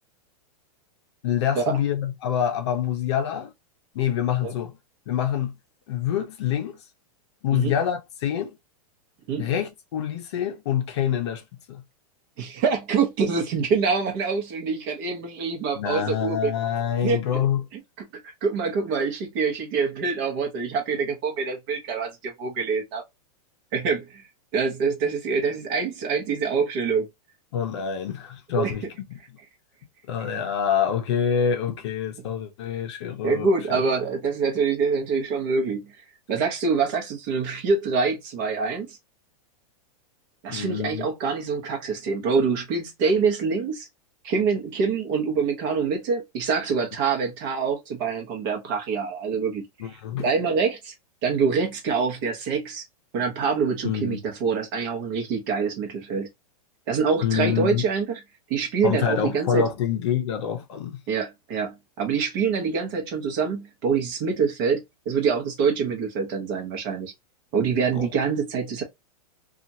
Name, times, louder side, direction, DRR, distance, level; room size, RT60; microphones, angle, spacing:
voice 1, 1.2-3.5 3.9-4.7 5.1-5.5 5.9-6.8 7.4-8.6 9.4-11.8 15.8-17.6 27.5-29.2 30.1-33.8 40.5-41.1 49.8-50.2 53.8-54.2 57.2-57.9 58.8-61.0 67.9-68.1, left 9 dB, 45° left, 0.7 m, -26 dB
voice 2, 12.4-16.5 17.0-17.2 17.7-23.0 23.7-24.2 24.5-27.1 28.6-28.7 33.2-35.9 36.3-39.0 40.4-43.9 44.2-50.9 51.2-52.8 53.1-56.3 56.9-58.2 58.5-59.7 61.1-67.1 67.5-68.8, right 5 dB, 35° right, 0.9 m, -25 dB
2.8 x 2.4 x 2.6 m
supercardioid pair, 170°, 19 cm